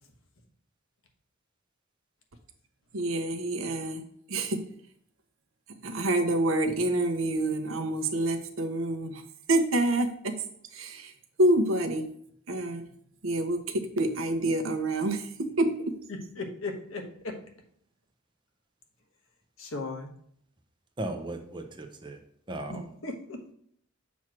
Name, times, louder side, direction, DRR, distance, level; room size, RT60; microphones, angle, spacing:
voice 1, 2.9-4.0 4.3-4.6 5.8-9.2 9.5-10.4 10.7-11.1 11.4-12.1 12.5-12.8 13.2-15.9, right 1 dB, 80° right, 6 dB, 0.9 m, -27 dB
voice 2, 16.1-17.4 19.6-20.1 22.7-23.5, left 2 dB, 80° left, 3 dB, 1.2 m, -37 dB
voice 3, 21.0-22.2 22.5-22.8, right 1 dB, 25° right, 4 dB, 0.8 m, -36 dB
7.2 x 3.1 x 6.0 m, 0.67 s
head